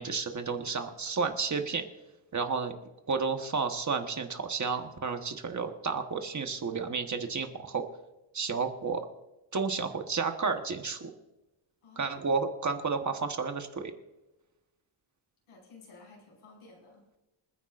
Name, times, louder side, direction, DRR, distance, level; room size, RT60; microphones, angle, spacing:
voice 1, 0.0-1.9 2.3-2.7 3.1-7.9 8.3-9.0 9.5-11.1 12.0-13.9, right 5 dB, 35° right, 5 dB, 1.2 m, -31 dB
voice 2, 11.8-12.3 15.5-17.1, left 3 dB, 85° left, -1 dB, 5.4 m, -54 dB
28.0 x 10.0 x 2.5 m, 0.99 s
wide cardioid pair, 160°, 50 cm